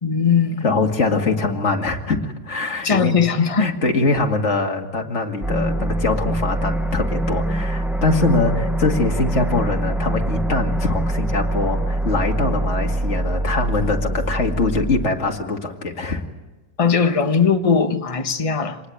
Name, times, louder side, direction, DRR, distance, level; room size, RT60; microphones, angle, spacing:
voice 1, 0.0-0.6 2.8-3.7 16.8-18.8, left 6 dB, 20° left, 1.3 m, -19 dB
voice 2, 0.6-16.2, left 3 dB, 45° left, 2.6 m, -23 dB
sound 1, 5.4-15.1, right 1 dB, ahead, 1.1 m, -23 dB
27.0 x 20.0 x 9.4 m
omnidirectional pair, 1.7 m